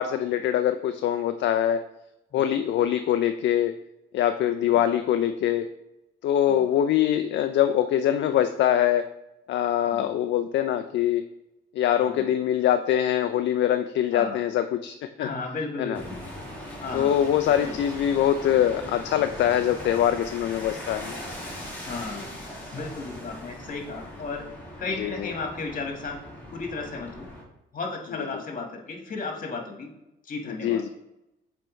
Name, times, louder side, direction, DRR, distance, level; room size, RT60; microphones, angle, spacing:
voice 1, 0.0-1.8 2.3-3.8 4.1-5.7 6.2-9.1 9.5-11.2 11.7-15.3 15.8-16.0 16.9-21.2 25.0-25.3 28.3-28.4 30.6-30.9, left 10 dB, 65° left, 8 dB, 0.4 m, -23 dB
voice 2, 15.2-16.0 16.8-17.1 17.6-17.8 21.9-22.3 22.7-24.4 24.8-26.2 26.5-27.3 27.7-29.9 30.2-30.8, left 3 dB, 45° left, 2 dB, 1.5 m, -34 dB
sound 1, 15.9-27.4, equal, 10° left, 2.0 m, -40 dB
7.5 x 4.5 x 3.1 m, 0.91 s
cardioid pair, 90°, 20 cm